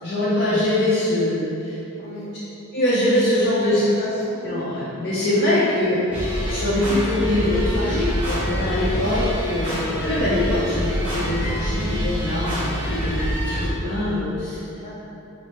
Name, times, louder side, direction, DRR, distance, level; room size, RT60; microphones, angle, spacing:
voice 1, 0.0-1.8 2.7-3.8 4.4-6.0 6.5-14.6, left 1 dB, 50° left, -10 dB, 0.6 m, -23 dB
voice 2, 2.0-2.4 3.4-4.4 5.6-6.3 9.6-9.8 14.8-14.9, equal, 30° left, -8 dB, 0.9 m, -35 dB
sound 1, 6.1-13.7, equal, 10° right, 1.4 m, -26 dB
5.6 x 2.0 x 3.2 m, 2.9 s
head